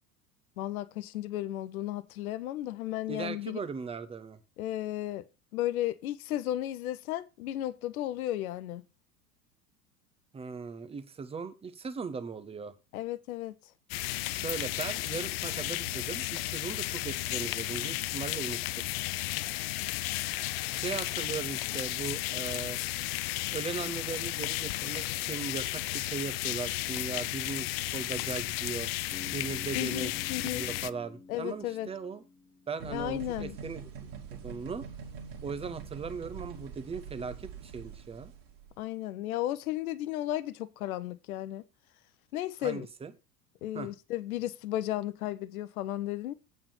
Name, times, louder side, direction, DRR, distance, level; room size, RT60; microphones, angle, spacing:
voice 1, 0.6-3.6 4.6-5.2 5.5-8.8 12.9-13.5 29.7-30.6 31.3-31.9 32.9-33.6 38.8-41.6 42.3-42.9 43.6-46.3, left 13 dB, 65° left, 0.8 m, -34 dB
voice 2, 3.1-4.4 10.3-12.7 14.3-18.9 20.7-22.8 23.5-27.7 27.9-28.9 29.3-30.1 30.4-32.2 32.7-33.9 34.4-34.9 35.4-38.3 42.6-43.1 43.7-43.9, right 5 dB, 10° right, 0.8 m, -38 dB
sound 1, 13.9-30.9, left 18 dB, 40° left, 0.4 m, -34 dB
Bass guitar, 29.1-33.1, left 3 dB, 15° left, 1.8 m, -49 dB
sound 2, 32.8-38.7, right 6 dB, 45° right, 2.2 m, -44 dB
8.7 x 4.3 x 7.0 m
figure-of-eight pair, 80°, 47 cm